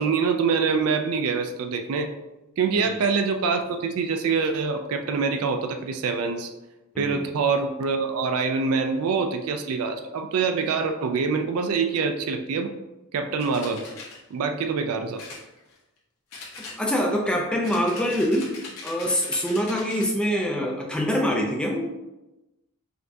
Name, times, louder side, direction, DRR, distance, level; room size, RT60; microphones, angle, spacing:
voice 1, 0.0-2.1 2.6-6.5 7.0-12.7 13.1-13.8 14.3-15.2, right 5 dB, 85° right, 6 dB, 0.4 m, -25 dB
sound 1, 13.4-14.2 15.2-16.0 16.3-17.2 17.6-20.2, left 3 dB, 80° left, 1.0 m, -41 dB
voice 2, 16.8-18.5 18.8-22.0, equal, 5° left, -1 dB, 0.4 m, -25 dB
5.1 x 2.2 x 2.6 m, 1.0 s
head